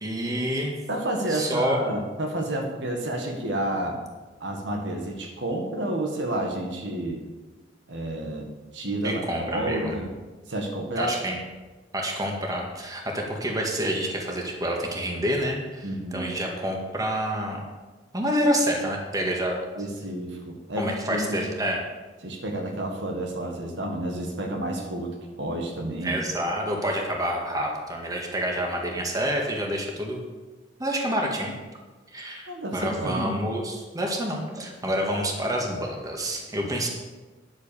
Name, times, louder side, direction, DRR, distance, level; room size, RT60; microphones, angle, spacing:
voice 1, 0.0-0.7 1.3-1.8 9.0-10.0 11.0-11.4 11.9-17.7 18.1-19.6 20.8-21.8 26.0-30.2 30.8-31.5 32.1-36.9, equal, 20° right, 0 dB, 1.9 m, -28 dB
voice 2, 0.9-4.0 4.4-7.2 7.9-9.2 9.5-10.1 10.5-11.1 15.8-16.3 19.8-21.4 22.2-26.2 32.5-33.3, right 1 dB, 70° right, 2 dB, 1.8 m, -30 dB
10.5 x 8.2 x 7.0 m, 1.3 s
head